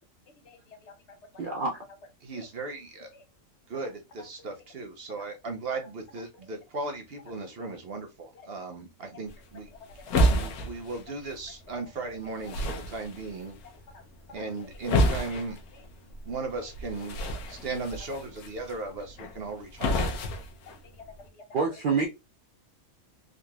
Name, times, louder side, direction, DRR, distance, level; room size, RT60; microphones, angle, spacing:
voice 1, 0.4-1.5 2.3-2.5 3.1-3.2 3.8-3.9 4.4-4.5 5.2-5.3 5.8-5.9 6.3-6.4 7.3-7.4 8.3-8.5 9.1-9.2 9.5-10.5 12.4-12.6 13.9-14.0 14.4-14.7 15.3-15.4 15.7-15.8 16.6-16.7 18.8-19.0 19.6-19.7 20.1-20.2 20.7-21.7, left 4 dB, 60° left, 0.9 m, -51 dB
voice 2, 1.4-1.8 21.5-22.1, right 4 dB, 90° right, 0.4 m, -27 dB
voice 3, 2.2-3.1 3.7-9.7 10.3-13.6 14.3-15.6 16.2-17.2 17.5-20.1, right 3 dB, 55° right, 0.7 m, -37 dB
sound 1, 9.3-21.3, equal, 90° left, 1.2 m, -31 dB
3.8 x 2.9 x 2.2 m
omnidirectional pair, 1.5 m